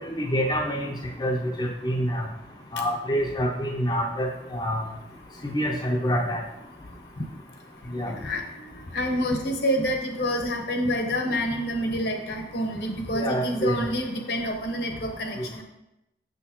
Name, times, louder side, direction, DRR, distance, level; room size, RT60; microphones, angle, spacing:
voice 1, 0.0-2.3 2.7-4.9 5.4-6.4 7.9-8.1 13.1-13.8 15.4-15.5, equal, 25° left, -1 dB, 0.7 m, -27 dB
voice 2, 8.1-8.4 8.9-15.6, equal, 65° left, 3 dB, 1.0 m, -27 dB
6.4 x 6.4 x 2.9 m, 0.89 s
head